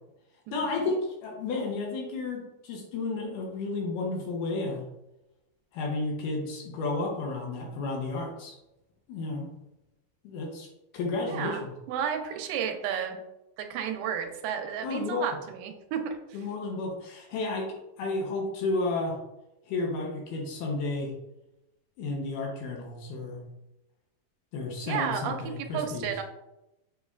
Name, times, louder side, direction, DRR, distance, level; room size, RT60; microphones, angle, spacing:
voice 1, 0.5-4.8 5.7-8.5 9.1-9.5 10.2-10.7 10.9-11.7 14.8-15.2 16.3-19.2 19.7-21.1 22.0-23.5 24.5-26.2, left 3 dB, 75° left, 0 dB, 2.2 m, -32 dB
voice 2, 11.3-13.2 13.6-16.2 24.9-26.2, right 8 dB, 85° right, 4 dB, 2.3 m, -32 dB
6.8 x 3.1 x 2.3 m, 0.92 s
omnidirectional pair, 4.0 m